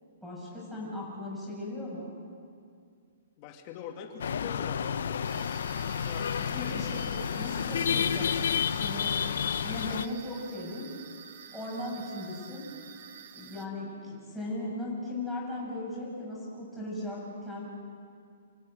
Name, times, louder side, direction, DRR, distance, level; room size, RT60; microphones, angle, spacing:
voice 1, 0.2-2.1 6.4-7.1 7.4-10.9 11.5-12.7 13.3-17.6, left 1 dB, ahead, -5 dB, 6.8 m, -37 dB
voice 2, 3.4-5.3 5.9-6.2 6.6-6.8, left 7 dB, 30° left, 4 dB, 2.6 m, -43 dB
sound 1, 4.2-10.1, left 8 dB, 70° left, 0.8 m, -30 dB
sound 2, 5.2-13.7, right 9 dB, 45° right, 1.5 m, -49 dB
27.5 x 16.0 x 9.1 m, 2.3 s
hypercardioid pair, 160°, 0 cm